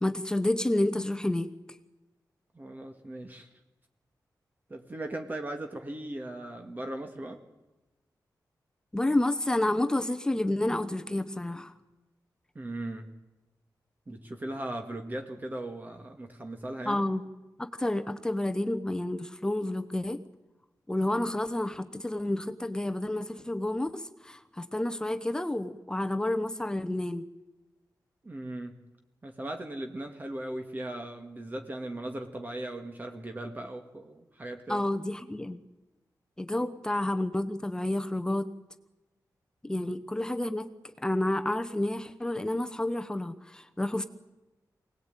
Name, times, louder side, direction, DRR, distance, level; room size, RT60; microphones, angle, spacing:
voice 1, 0.0-1.5 8.9-11.7 16.8-17.2 17.6-20.2 20.9-27.2 34.7-35.6 36.4-38.5 39.6-40.7 41.0-44.1, left 1 dB, 10° left, 8 dB, 1.0 m, -30 dB
voice 2, 2.6-3.5 4.7-7.4 12.6-13.1 14.1-17.0 28.2-28.8 29.2-34.8 39.8-39.9, right 1 dB, 25° right, 5 dB, 1.9 m, -38 dB
25.0 x 18.5 x 9.1 m, 1.1 s
wide cardioid pair, 165°, 7 cm